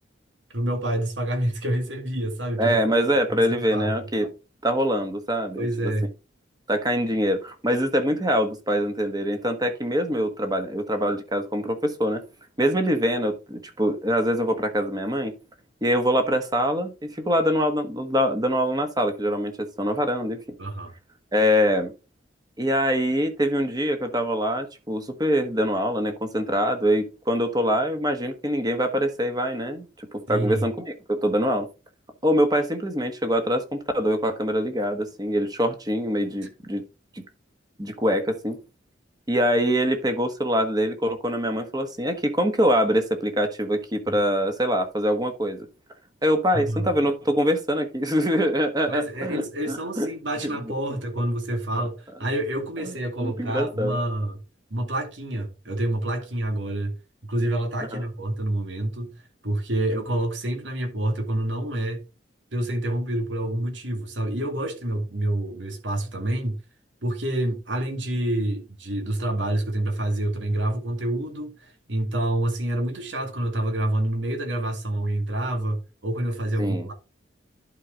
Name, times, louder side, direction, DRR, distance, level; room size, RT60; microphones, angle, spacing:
voice 1, 0.5-2.8 3.3-4.0 5.6-6.1 20.6-20.9 30.3-30.7 46.5-46.9 48.9-54.4 54.7-56.9 57.2-62.1 62.5-66.6 67.0-71.5 71.9-76.9, right 1 dB, 85° right, 2.2 m, -27 dB
voice 2, 2.6-4.3 4.6-5.9 6.7-12.2 12.6-15.3 15.8-20.4 21.3-21.9 22.6-31.7 32.2-36.8 37.8-38.6 39.3-45.7 46.2-50.1 53.2-54.0 57.9-58.0 76.6-76.9, equal, 20° right, 1.4 m, -24 dB
11.0 x 4.8 x 3.8 m
head